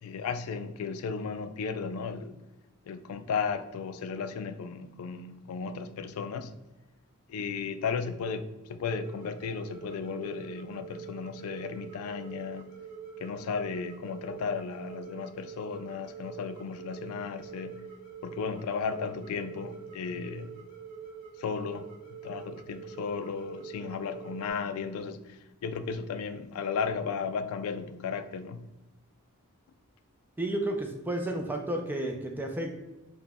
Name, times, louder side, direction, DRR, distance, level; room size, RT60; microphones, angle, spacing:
voice 1, 0.0-2.4 2.9-6.5 7.3-12.7 13.2-17.8 18.2-20.6 21.4-28.6, left 5 dB, 75° left, 0.3 m, -35 dB
sound 1, 8.8-24.5, right 7 dB, 20° left, 1.0 m, -45 dB
voice 2, 30.4-32.8, right 1 dB, 10° right, 0.3 m, -32 dB
4.7 x 2.1 x 3.4 m
head